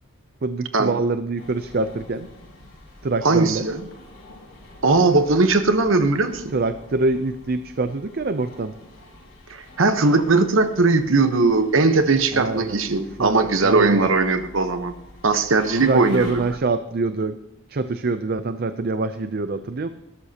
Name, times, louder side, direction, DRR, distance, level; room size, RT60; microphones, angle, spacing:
voice 1, 0.4-2.3 3.0-3.7 6.5-8.7 12.3-12.8 13.2-14.1 15.8-17.4 17.7-19.9, right 3 dB, 45° right, 10 dB, 0.5 m, -25 dB
sound 1, 1.4-16.5, left 2 dB, 60° left, 5.5 m, -46 dB
voice 2, 3.2-3.9 4.8-6.4 9.5-14.9 15.2-16.4, right 3 dB, 65° right, 8 dB, 1.0 m, -19 dB
19.0 x 13.0 x 2.9 m, 0.87 s
head